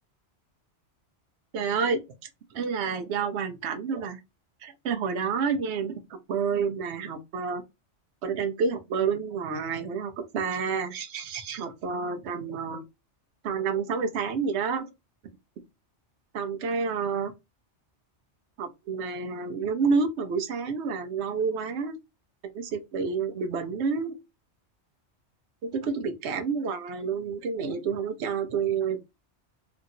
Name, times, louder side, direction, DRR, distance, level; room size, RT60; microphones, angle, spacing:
voice 1, 1.5-2.0 2.5-4.2 4.6-7.6 8.2-12.8 13.4-14.9 16.3-17.3 18.6-22.0 22.5-24.1 25.6-29.0, right 5 dB, 70° right, 0.9 m, -29 dB
2.8 x 2.6 x 2.7 m
omnidirectional pair, 1.2 m